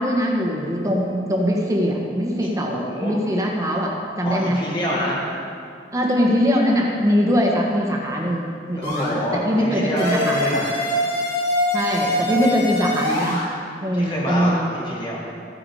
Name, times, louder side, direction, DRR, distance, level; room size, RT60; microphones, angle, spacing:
voice 1, 0.0-4.6 5.9-10.6 11.7-13.4 13.8-14.6, equal, 20° right, -1 dB, 1.6 m, -22 dB
voice 2, 2.4-3.1 4.2-5.3 8.7-10.8 12.2-12.3 13.9-15.2, equal, 30° left, -6 dB, 3.5 m, -27 dB
sound 1, 8.8-9.1 10.0-13.5, left 1 dB, 65° left, 3.8 m, -24 dB
15.0 x 9.7 x 5.0 m, 2.4 s
head